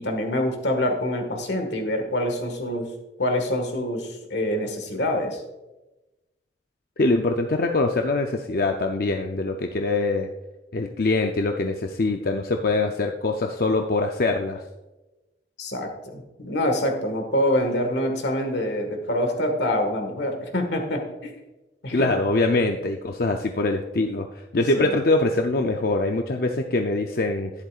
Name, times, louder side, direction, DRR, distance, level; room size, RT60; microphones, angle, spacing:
voice 1, 0.0-2.9 3.2-5.4 15.6-21.3 21.8-22.1 24.6-25.0, left 1 dB, 90° left, 4 dB, 1.6 m, -26 dB
voice 2, 7.0-10.3 10.7-14.6 21.9-24.3 24.5-27.5, left 2 dB, 55° left, 4 dB, 0.5 m, -23 dB
11.5 x 10.5 x 2.4 m, 1.0 s
head